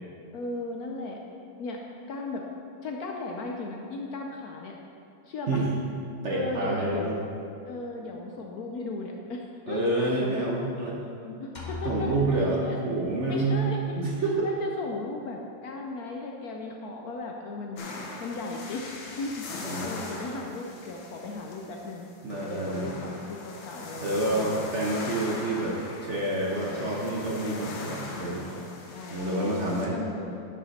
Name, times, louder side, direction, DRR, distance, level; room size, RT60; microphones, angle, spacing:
voice 1, 0.3-1.2 1.6-1.8 2.1-2.4 2.8-4.8 5.3-5.6 6.3-7.2 7.7-10.5 10.9-12.8 13.3-14.0 14.4-17.9 18.2-18.9 19.2-22.1 22.4-24.7 26.6-27.0 28.1-30.4, left 2 dB, 65° left, 1 dB, 1.0 m, -36 dB
voice 2, 6.2-7.1 9.7-11.0 11.8-13.7 14.0-14.5 19.6-19.9 22.2-23.0 24.0-28.4 29.1-30.0, right 2 dB, 50° right, -3 dB, 1.0 m, -28 dB
sound 1, 11.5-13.4, left 4 dB, 30° left, 0.9 m, -39 dB
sound 2, 17.8-29.9, left 3 dB, 90° left, 1.8 m, -40 dB
11.0 x 6.0 x 4.1 m, 2.6 s
omnidirectional pair, 2.0 m